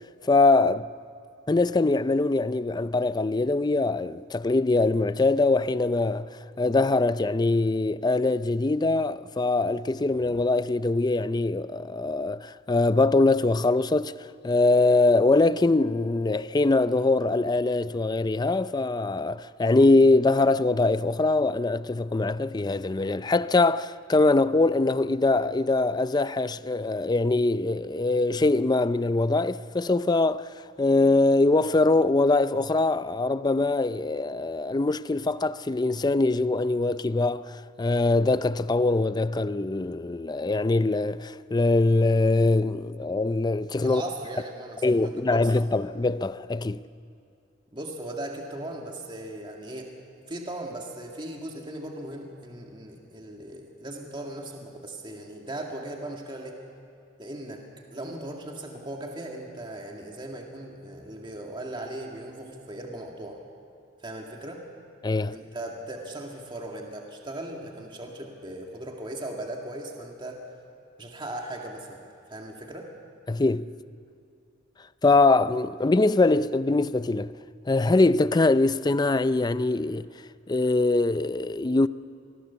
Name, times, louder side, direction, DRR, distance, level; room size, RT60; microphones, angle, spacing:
voice 1, 0.2-0.9 1.5-6.3 6.6-14.1 14.4-44.0 44.8-46.8 65.0-65.4 73.3-73.7 75.0-77.3 77.7-80.1 80.5-81.9, left 2 dB, 20° left, 0.4 m, -23 dB
voice 2, 43.8-45.5 47.7-49.9 50.3-56.6 57.2-57.6 57.9-63.4 64.0-64.6 65.3-70.4 71.0-72.0 72.3-72.9, right 1 dB, 25° right, 2.1 m, -38 dB
26.5 x 19.5 x 7.0 m
head